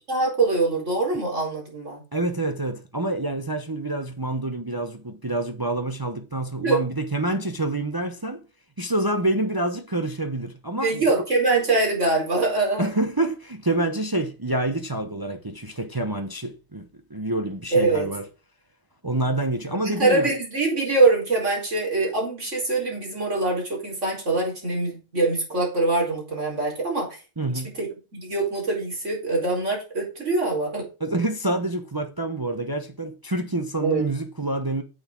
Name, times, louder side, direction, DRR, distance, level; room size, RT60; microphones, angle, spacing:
voice 1, 0.1-2.0 6.6-6.8 10.8-12.9 17.7-18.1 19.8-27.2 27.5-30.8 33.8-34.0, right 3 dB, 85° right, 5.0 m, -23 dB
voice 2, 2.1-8.4 8.8-11.1 12.8-18.2 19.0-20.3 27.4-27.8 31.0-34.8, right 2 dB, 20° right, 0.9 m, -27 dB
9.8 x 8.1 x 3.8 m
omnidirectional pair, 1.2 m